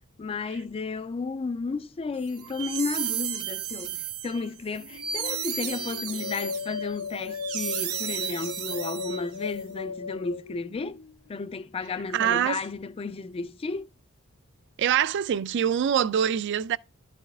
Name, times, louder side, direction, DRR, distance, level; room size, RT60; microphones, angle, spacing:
voice 1, 0.2-11.0 11.3-13.9, left 4 dB, 25° left, 0.3 m, -33 dB
sound 1, 2.3-9.5, right 9 dB, 85° right, 0.9 m, -34 dB
sound 2, 4.8-11.3, left 6 dB, 85° left, 0.5 m, -37 dB
voice 2, 12.1-12.6 14.8-16.8, right 9 dB, 55° right, 0.3 m, -24 dB
12.5 x 4.2 x 2.3 m
head